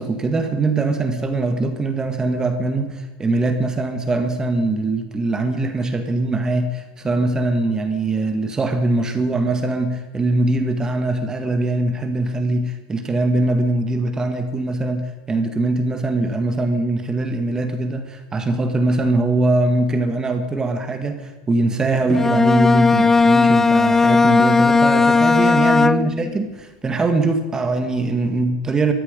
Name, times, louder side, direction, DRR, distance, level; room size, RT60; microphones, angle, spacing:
voice 1, 0.0-28.9, right 2 dB, 15° right, 7 dB, 1.8 m, -22 dB
Bowed string instrument, 22.1-26.4, left 4 dB, 10° left, 0.4 m, -16 dB
18.5 x 14.5 x 5.4 m, 1.2 s
supercardioid pair, 130°, 4 cm